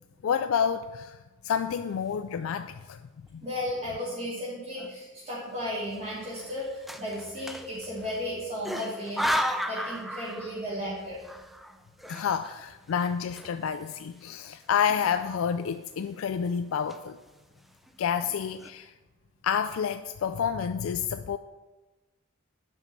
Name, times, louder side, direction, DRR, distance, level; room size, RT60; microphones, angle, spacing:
voice 1, 0.2-1.2 1.4-3.0 3.3-3.4 12.1-17.2 18.0-18.9 19.4-21.4, left 7 dB, 80° left, 0.4 m, -29 dB
sound 1, 2.2-2.7 3.3-3.4 3.6-4.3 4.8-5.0 5.9-8.2 8.6-10.8 11.1-13.9 14.2-14.3 14.9-15.6 16.0-16.3 16.7-17.3 17.9-18.0 18.2-18.7, equal, ahead, 0.4 m, -35 dB
voice 2, 3.4-11.2, left 1 dB, 35° right, 2.8 m, -34 dB
8.9 x 6.1 x 5.7 m
head